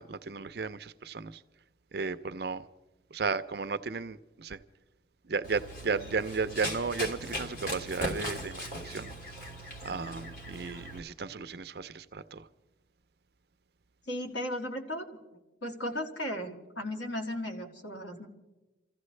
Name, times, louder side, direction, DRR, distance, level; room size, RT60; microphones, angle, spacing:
voice 1, 0.0-1.4 1.9-2.7 3.1-4.6 5.2-9.1 9.8-12.5, right 4 dB, 60° right, 0.5 m, -34 dB
Run, 5.4-11.0, equal, 55° left, 2.7 m, -39 dB
voice 2, 14.1-15.1 15.6-18.3, left 1 dB, 90° left, 2.2 m, -35 dB
29.0 x 15.0 x 3.2 m
head